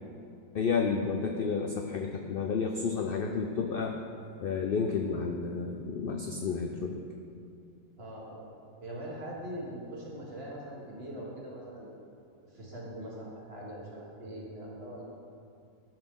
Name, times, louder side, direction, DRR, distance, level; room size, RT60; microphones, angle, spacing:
voice 1, 0.5-4.0 4.4-7.0, left 5 dB, 70° left, 3 dB, 0.5 m, -31 dB
voice 2, 8.0-8.5 8.8-11.9 12.4-15.0, right 1 dB, 40° right, -4 dB, 1.9 m, -42 dB
12.0 x 6.0 x 3.8 m, 2.4 s
omnidirectional pair, 1.6 m